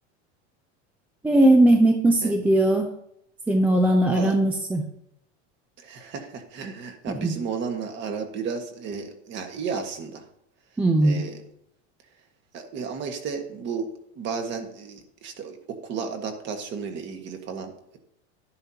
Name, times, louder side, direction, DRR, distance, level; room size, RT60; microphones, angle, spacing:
voice 1, 1.2-2.9 3.5-4.9 7.1-7.3 10.8-11.2, right 1 dB, 5° right, 3 dB, 0.5 m, -19 dB
voice 2, 4.1-4.4 5.8-10.2 11.0-11.4 12.5-18.0, right 5 dB, 30° right, 5 dB, 1.6 m, -33 dB
12.0 x 10.5 x 2.9 m, 0.76 s
supercardioid pair, 155°, 35 cm